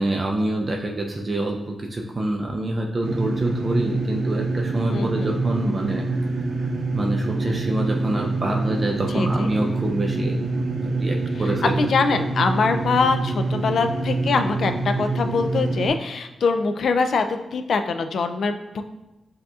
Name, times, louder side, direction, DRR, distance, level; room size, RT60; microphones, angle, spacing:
voice 1, 0.0-11.8, right 1 dB, 30° right, 0 dB, 0.4 m, -26 dB
sound 1, 3.0-15.9, right 3 dB, 80° right, 0.6 m, -26 dB
voice 2, 4.9-5.3 9.1-9.5 11.8-17.3 17.5-18.8, left 4 dB, 65° left, 7 dB, 0.3 m, -23 dB
7.6 x 2.8 x 2.3 m, 0.98 s
wide cardioid pair, 130°, 0 cm